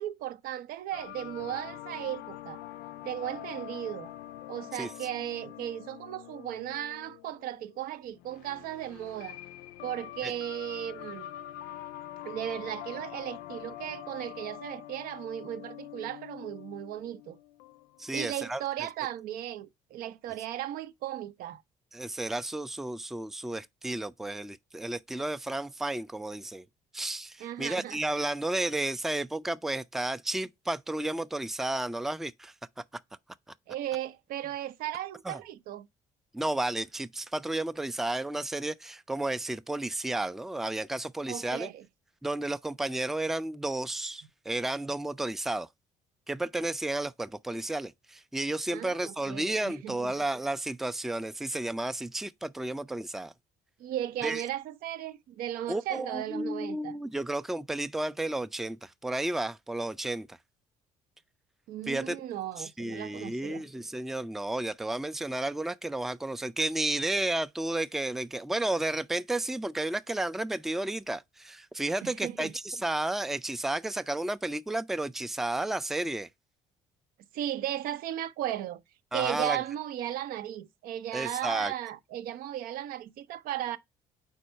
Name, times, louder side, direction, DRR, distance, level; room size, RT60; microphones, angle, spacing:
voice 1, 0.0-2.6 3.0-4.1 4.5-9.4 9.8-11.3 12.2-17.4 18.1-21.6 27.4-28.0 33.7-35.9 41.3-41.8 48.7-50.1 53.8-57.0 61.7-63.6 72.0-72.5 77.3-78.8 79.1-83.8, right 12 dB, 70° right, 0.6 m, -36 dB
sound 1, 0.9-18.2, left 13 dB, 80° left, 0.4 m, -45 dB
voice 2, 18.0-18.6 21.9-26.7 26.9-32.5 35.3-35.4 36.3-41.7 42.2-45.7 46.3-53.3 54.2-54.4 55.7-60.4 61.9-62.2 62.6-76.3 79.1-79.6 81.1-81.7, right 2 dB, ahead, 0.3 m, -32 dB
4.5 x 4.2 x 5.4 m
supercardioid pair, 70°, 15 cm